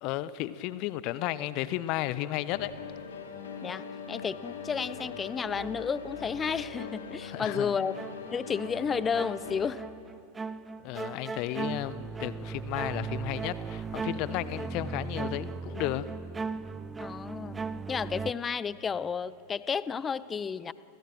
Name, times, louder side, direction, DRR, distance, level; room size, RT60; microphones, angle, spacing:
voice 1, 0.0-2.7 7.2-7.8 10.8-16.0, left 15 dB, 40° left, 16 dB, 1.0 m, -33 dB
sound 1, 2.5-9.7, left 6 dB, 65° left, 2.9 m, -41 dB
voice 2, 3.6-7.9 8.3-9.8 17.0-17.6 17.9-20.7, left 6 dB, 20° left, 18 dB, 0.7 m, -32 dB
sound 2, 5.0-6.4 6.8-18.3, right 4 dB, 15° right, 0.8 m, -38 dB
29.5 x 28.5 x 6.2 m, 3.0 s
figure-of-eight pair, 90°, 0 cm